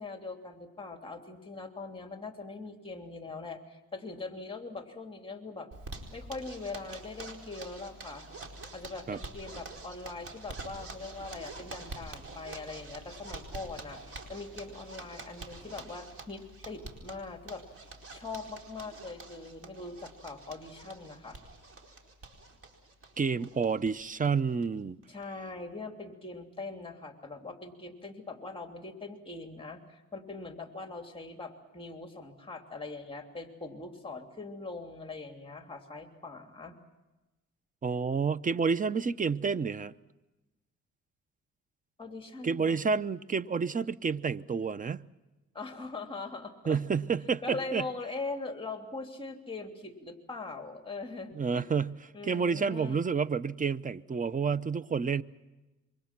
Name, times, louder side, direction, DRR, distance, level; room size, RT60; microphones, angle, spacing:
voice 1, 0.0-5.7 6.1-8.3 8.7-17.6 18.1-21.4 25.1-36.7 42.0-43.0 45.5-46.8 47.4-51.7 52.1-53.0, left 3 dB, 15° left, 3.0 m, -42 dB
Zipper (clothing), 5.7-23.9 24.2-24.3 24.6-24.7 25.0-25.5, right 2 dB, 50° right, 4.7 m, -46 dB
voice 2, 23.2-25.0 37.8-39.9 42.4-45.0 46.7-47.8 51.4-55.2, right 5 dB, 25° right, 0.8 m, -29 dB
27.0 x 24.5 x 6.1 m
cardioid pair, 90°, 30 cm